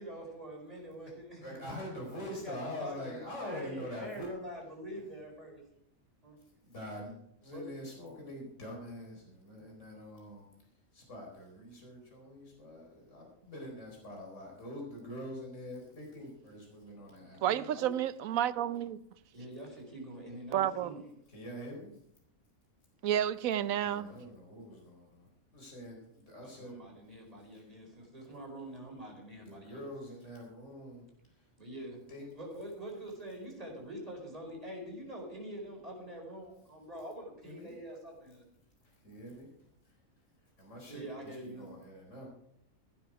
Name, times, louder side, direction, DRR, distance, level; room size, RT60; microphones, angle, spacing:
voice 1, 0.0-1.7 2.2-5.6 6.2-6.4 7.5-7.8 17.2-17.9 19.3-21.0 26.4-29.8 31.6-32.0 32.3-38.4 40.9-41.7, right 1 dB, 25° right, 4.8 m, -45 dB
voice 2, 1.4-4.3 6.6-7.2 7.4-10.5 10.9-17.4 21.3-21.9 23.8-25.3 25.5-26.8 27.6-27.7 29.4-31.0 31.4-31.5 32.1-32.3 37.4-37.7 38.8-39.5 40.6-42.3, left 1 dB, 60° left, 4.6 m, -45 dB
voice 3, 17.4-19.0 20.5-20.9 23.0-24.1, right 10 dB, 75° right, 1.1 m, -30 dB
15.5 x 12.0 x 4.7 m
omnidirectional pair, 1.5 m